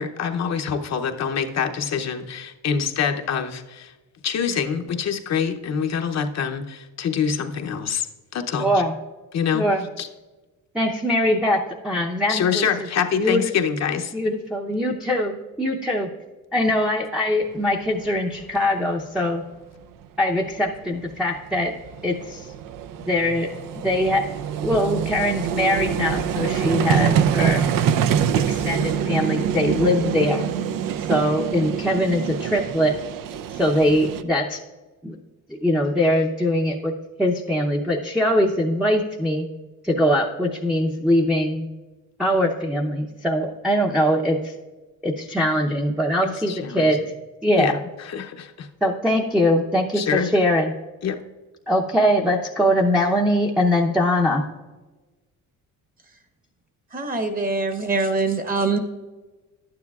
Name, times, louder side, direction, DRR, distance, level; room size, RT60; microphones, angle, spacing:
voice 1, 0.0-3.9 4.2-8.1 8.3-8.8 9.3-9.6 10.0-10.1 12.3-14.1 46.2-46.9 47.6-48.7 49.9-50.3 51.0-51.2, left 7 dB, 50° left, 5 dB, 0.7 m, -25 dB
voice 2, 8.6-8.9 9.5-9.8 10.7-12.7 13.2-13.5 14.1-16.1 16.5-19.4 20.2-21.7 22.0-22.5 23.0-23.5 23.8-24.3 24.6-27.7 28.5-30.5 31.1-33.0 33.6-34.6 35.0-35.2 35.5-36.9 37.2-39.5 39.8-41.7 42.2-44.5 45.0-47.0 47.4-47.7 48.8-50.7 51.7-54.4, left 1 dB, ahead, -3 dB, 0.7 m, -22 dB
Vehicle, 18.1-18.2 18.4-18.6 20.6-20.7 20.8-34.2, right 8 dB, 75° right, 0.6 m, -25 dB
voice 3, 56.9-58.8, right 3 dB, 25° right, 6 dB, 1.1 m, -23 dB
11.5 x 9.5 x 2.4 m, 1.2 s
cardioid pair, 115°, 34 cm